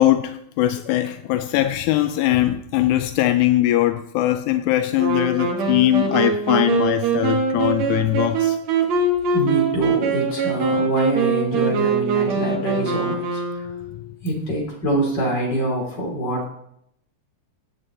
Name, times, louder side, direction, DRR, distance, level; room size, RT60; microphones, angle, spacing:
voice 1, 0.0-8.6, left 14 dB, 85° left, 2.0 m, -20 dB
Wind instrument woodwind instrument, 5.0-14.0, right 4 dB, 65° right, 2.6 m, -22 dB
voice 2, 9.3-13.7 14.2-16.5, right 1 dB, 35° left, 3.8 m, -25 dB
16.5 x 8.0 x 3.9 m
omnidirectional pair, 3.4 m